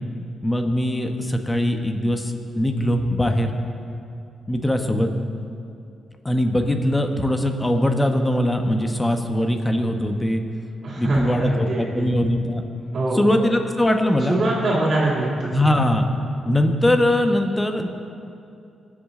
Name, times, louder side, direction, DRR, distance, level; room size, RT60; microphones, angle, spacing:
voice 1, 0.4-3.6 4.5-5.1 6.2-10.4 11.0-12.6 13.1-14.4 15.5-16.1 16.4-17.9, left 1 dB, 15° left, 5 dB, 1.4 m, -21 dB
voice 2, 10.8-12.1 12.9-13.3 14.3-15.7, right 2 dB, 55° right, -9 dB, 3.1 m, -23 dB
21.0 x 7.6 x 3.9 m, 2.5 s
cardioid pair, 70°, 0 cm